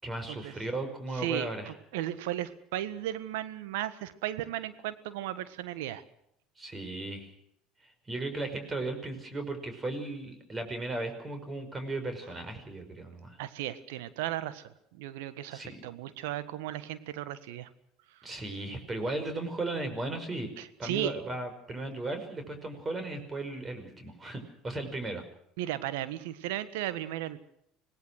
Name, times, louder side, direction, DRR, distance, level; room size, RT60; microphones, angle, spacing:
voice 1, 0.0-1.7 6.6-7.3 7.8-13.4 15.5-15.7 18.2-20.5 20.8-25.2, right 2 dB, 25° right, 8 dB, 5.6 m, -36 dB
voice 2, 1.1-6.0 13.4-17.7 18.1-18.3 20.6-21.2 25.6-27.4, right 13 dB, 70° right, 13 dB, 1.5 m, -35 dB
26.0 x 18.5 x 6.4 m, 0.75 s
hypercardioid pair, 70°, 0 cm